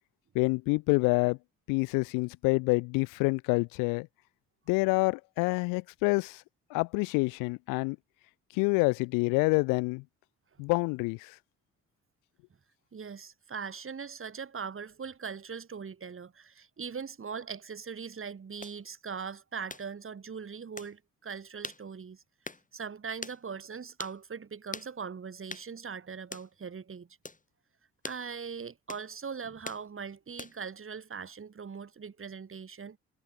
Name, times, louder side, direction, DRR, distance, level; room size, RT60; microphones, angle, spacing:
voice 1, 0.3-1.4 1.7-4.1 4.7-6.4 6.7-8.0 8.5-10.0 10.6-11.3, left 29 dB, 85° left, 0.5 m, -27 dB
voice 2, 12.9-22.2 22.7-27.1 28.0-33.0, right 6 dB, 40° right, 2.5 m, -40 dB
sound 1, 18.6-18.8 19.7-19.9 20.8-20.9 21.6-21.8 22.4-22.6 23.2-23.4 24.0-24.2 24.7-24.9 25.5-25.7 26.3-26.5 27.2-27.4 28.0-28.2 28.9-29.1 29.6-29.8 30.4-30.7, left 3 dB, 25° left, 7.0 m, -42 dB
hypercardioid pair, 50°, 32 cm